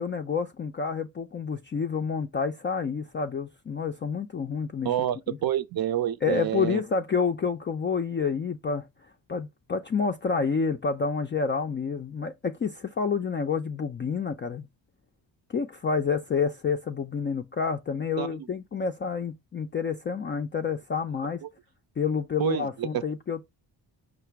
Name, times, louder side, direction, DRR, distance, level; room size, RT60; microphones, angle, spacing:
voice 1, 0.0-4.9 5.3-5.4 6.2-8.9 9.3-14.7 15.5-21.4 22.0-23.4, left 5 dB, 25° left, 0.4 m, -29 dB
voice 2, 4.8-6.8 18.2-18.5 22.4-23.0, right 11 dB, 55° right, 0.6 m, -28 dB
4.8 x 2.0 x 4.5 m
supercardioid pair, 60°, 44 cm